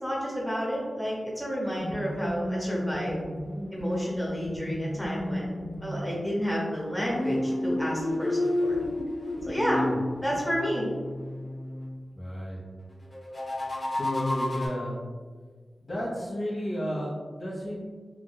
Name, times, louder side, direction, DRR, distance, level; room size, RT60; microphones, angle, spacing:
voice 1, 0.0-3.2 3.7-5.5 5.8-8.8 9.4-9.8 10.2-10.9, equal, ahead, -5 dB, 0.6 m, -30 dB
sound 1, 1.8-6.1 7.1-11.9 13.1-14.7, left 1 dB, 40° left, 0.8 m, -32 dB
voice 2, 9.5-10.0 12.1-12.6 13.9-15.0 15.8-17.8, equal, 55° left, -5 dB, 1.1 m, -32 dB
3.5 x 2.9 x 2.2 m, 1.5 s
wide cardioid pair, 90°, 0 cm